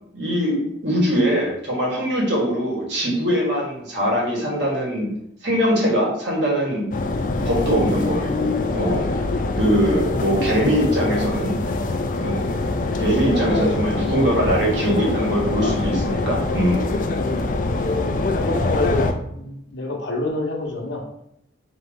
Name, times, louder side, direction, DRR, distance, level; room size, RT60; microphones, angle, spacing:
voice 1, 0.1-5.1 5.4-6.8 7.4-9.1 9.6-11.5 12.2-12.6 13.0-16.8, equal, 60° right, -3 dB, 1.4 m, -22 dB
sound 1, 6.9-19.1, left 2 dB, 40° left, 0.3 m, -24 dB
voice 2, 9.7-10.2 10.8-11.1 13.4-13.8 17.6-19.1 19.3-21.0, left 2 dB, 60° left, 0 dB, 0.8 m, -27 dB
3.9 x 2.9 x 3.5 m, 0.76 s
head